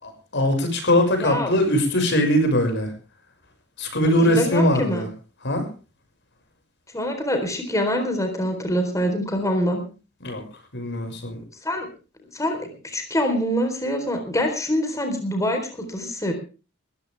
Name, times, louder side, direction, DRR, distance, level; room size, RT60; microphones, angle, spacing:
voice 1, 0.0-2.9 3.8-5.1 5.4-5.7 10.2-10.4 10.7-11.4, left 1 dB, 60° left, 5 dB, 6.1 m, -21 dB
voice 2, 1.2-1.5 4.2-5.0 6.9-9.8 11.6-11.9 12.3-16.3, equal, 15° left, 5 dB, 4.0 m, -25 dB
20.5 x 15.0 x 3.5 m, 0.35 s
head